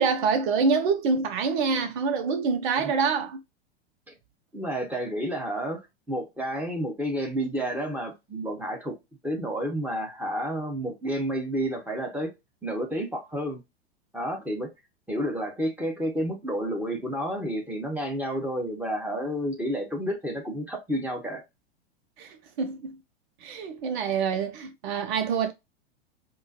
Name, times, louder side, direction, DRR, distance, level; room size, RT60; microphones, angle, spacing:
voice 1, 0.0-3.4 22.2-23.0 23.4-25.5, right 5 dB, 50° right, 0.5 m, -26 dB
voice 2, 4.5-8.9 9.2-12.3 12.6-13.6 14.1-14.7 15.1-21.4, equal, 5° right, 1.2 m, -30 dB
4.4 x 2.2 x 2.8 m
figure-of-eight pair, 95°, 32 cm